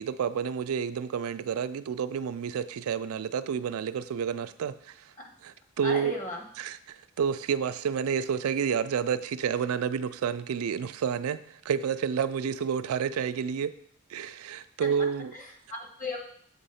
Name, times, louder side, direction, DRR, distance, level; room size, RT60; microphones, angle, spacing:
voice 1, 0.0-5.0 5.4-6.1 6.6-13.7 14.1-15.3, right 7 dB, 90° right, 12 dB, 0.4 m, -30 dB
voice 2, 5.8-6.4 14.8-14.9 15.3-16.3, left 2 dB, 35° left, 2 dB, 1.2 m, -36 dB
7.3 x 3.4 x 5.5 m, 0.65 s
head